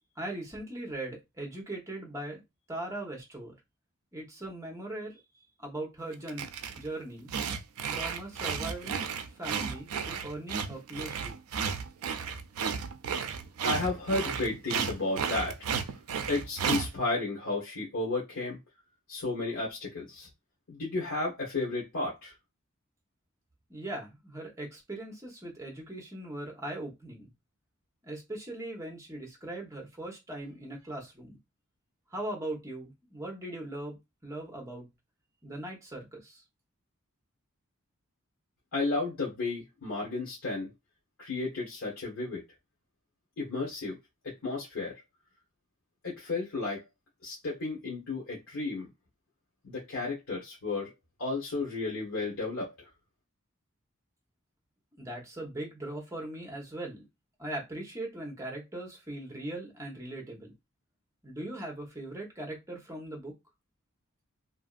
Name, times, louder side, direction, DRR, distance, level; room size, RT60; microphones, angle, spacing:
voice 1, 0.2-2.4 2.7-3.5 4.1-5.2 5.6-6.5 6.8-7.3 7.9-9.1 9.4-11.3 23.7-27.3 28.0-31.4 32.1-34.9 35.4-36.4 55.0-57.1 57.4-60.5 61.2-63.4, right 1 dB, 15° right, 0.9 m, -40 dB
sound 1, 6.1-6.9 7.3-16.9, right 6 dB, 80° right, 0.4 m, -33 dB
voice 2, 13.6-15.6 16.3-18.6 19.1-20.3 20.7-22.3 38.7-40.7 41.2-42.4 43.4-44.0 44.4-45.0 46.0-46.8 47.2-48.9 49.6-50.9 51.2-52.7, left 3 dB, 75° left, 1.1 m, -33 dB
2.9 x 2.5 x 2.4 m
head